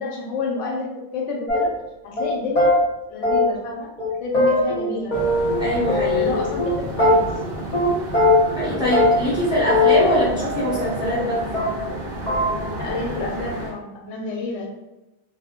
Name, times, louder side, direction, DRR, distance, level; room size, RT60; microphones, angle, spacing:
voice 1, 0.0-1.7 2.0-2.7 3.1-3.9 4.2-5.2 6.1-7.3 12.7-14.7, left 3 dB, 80° left, -1 dB, 0.9 m, -29 dB
sound 1, 1.5-1.9 2.2-2.3 2.6-2.8 3.2-3.7 4.0-4.1 4.3-5.6 5.9-6.7 7.0-7.5 7.7-7.9 8.1-8.6 8.9-9.4 9.7-11.3 11.5-12.0 12.3-12.5, left 2 dB, 40° left, 0.8 m, -20 dB
sound 2, 5.1-13.7, right 1 dB, 60° right, 0.7 m, -31 dB
voice 2, 5.6-6.4 8.5-11.4, left 1 dB, 5° right, -9 dB, 0.7 m, -22 dB
2.2 x 2.0 x 2.8 m, 0.98 s
omnidirectional pair, 1.2 m